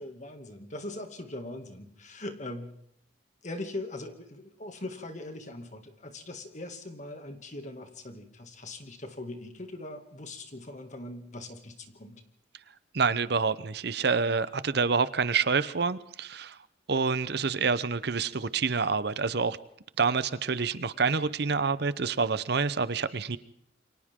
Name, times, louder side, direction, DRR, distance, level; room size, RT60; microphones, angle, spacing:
voice 1, 0.0-2.7 3.4-12.2, left 2 dB, 40° left, 6 dB, 2.3 m, -41 dB
voice 2, 12.9-16.6 16.9-19.6 20.0-23.4, right 5 dB, 60° right, 15 dB, 0.8 m, -27 dB
28.5 x 24.0 x 3.8 m, 0.68 s
head